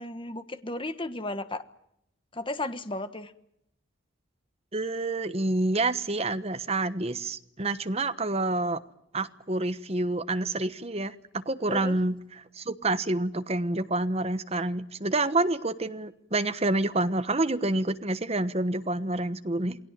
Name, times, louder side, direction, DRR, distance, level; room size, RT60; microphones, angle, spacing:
voice 1, 0.0-1.6 2.3-3.3 11.7-12.0, left 2 dB, 25° left, 10 dB, 1.4 m, -34 dB
voice 2, 4.7-8.8 9.1-12.2 12.6-19.8, right 2 dB, 30° right, 11 dB, 1.2 m, -28 dB
28.5 x 20.0 x 7.5 m, 0.79 s
head